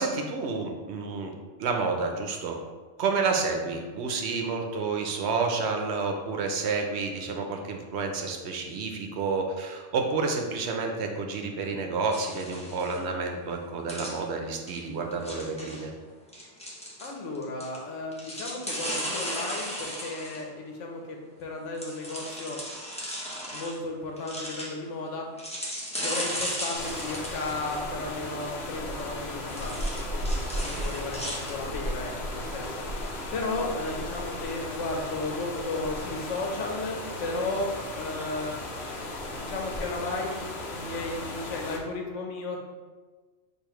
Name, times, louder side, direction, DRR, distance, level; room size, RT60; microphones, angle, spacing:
voice 1, 0.0-1.3 1.6-2.6 3.0-15.9 30.7-30.8, right 4 dB, 70° right, 3 dB, 0.8 m, -30 dB
sound 1, 12.1-13.0 13.9-14.2 14.7-14.8 15.1-15.8 16.3-17.8 18.1-20.4 21.7-23.8 24.2-24.7 25.4-27.8 29.1-29.2 29.5-31.5, equal, 5° left, 0.7 m, -36 dB
voice 2, 17.0-22.6 23.5-25.3 26.0-32.7 33.3-38.5 39.4-42.6, left 2 dB, 85° left, 1 dB, 1.1 m, -34 dB
sound 2, 26.8-41.8, left 1 dB, 65° left, 0.9 m, -35 dB
6.6 x 2.7 x 3.0 m, 1.4 s
omnidirectional pair, 1.2 m